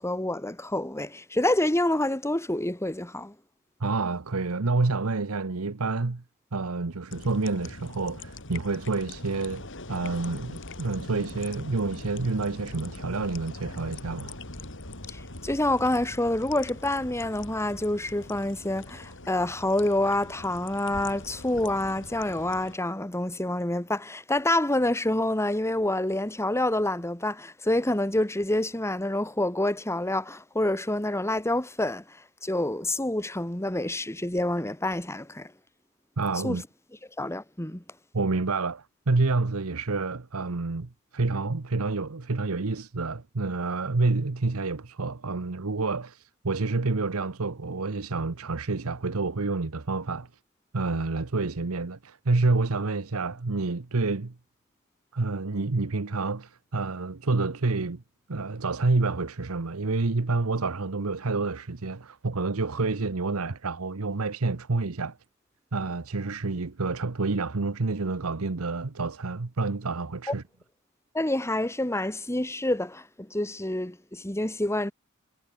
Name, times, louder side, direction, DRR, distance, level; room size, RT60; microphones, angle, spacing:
voice 1, 0.0-3.3 15.1-32.2 32.4-35.5 36.4-36.6 37.2-37.8 71.1-74.9, left 1 dB, 15° left, 2.0 m, -27 dB
voice 2, 3.8-6.2 6.5-14.4 36.2-36.6 38.1-50.3 50.7-54.3 55.1-58.0 58.3-65.2 65.7-70.4, right 3 dB, 75° right, 1.0 m, -28 dB
sound 1, 7.1-22.8, left 2 dB, 60° left, 6.8 m, -42 dB
head